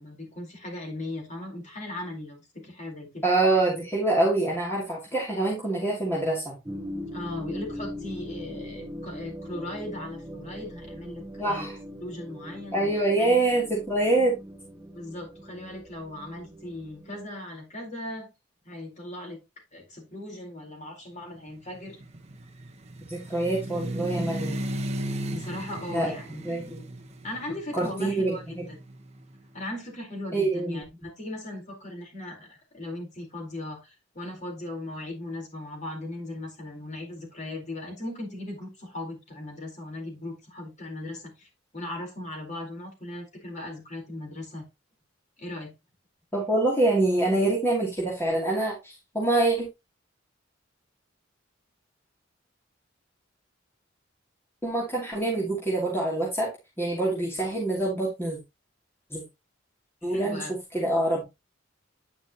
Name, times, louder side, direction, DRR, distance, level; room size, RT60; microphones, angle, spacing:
voice 1, 0.0-3.3 7.1-11.7 12.0-13.4 14.9-18.3 18.6-19.4 19.7-22.0 25.3-26.7 27.2-28.4 29.5-44.7 45.4-45.7 60.0-60.6, left 1 dB, 40° left, 4.1 m, -38 dB
voice 2, 3.2-6.5 11.4-11.8 12.7-14.4 23.1-24.6 25.9-26.8 27.7-28.7 30.3-30.8 46.3-49.7 54.6-56.5 56.8-58.4 59.1-59.2 60.0-60.4 60.7-61.2, right 2 dB, 15° left, 2.9 m, -25 dB
sound 1, 6.7-17.2, equal, 15° right, 0.7 m, -40 dB
sound 2, 21.5-29.5, right 1 dB, 35° right, 1.1 m, -36 dB
10.0 x 5.9 x 2.9 m
head